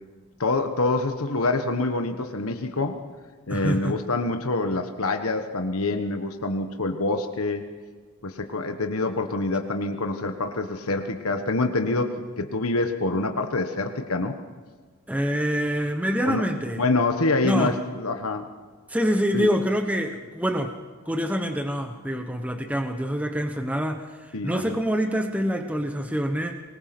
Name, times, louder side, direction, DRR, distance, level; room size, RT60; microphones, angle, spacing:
voice 1, 0.4-3.0 3.5-7.6 8.2-14.3 16.2-16.4 16.8-18.5 19.3-19.5 24.3-24.8, left 2 dB, 70° left, 5 dB, 1.4 m, -26 dB
voice 2, 3.5-4.0 15.1-16.8 17.4-17.7 18.9-20.7 21.1-26.6, equal, 5° right, 5 dB, 1.1 m, -26 dB
24.5 x 20.5 x 6.1 m, 1.5 s
head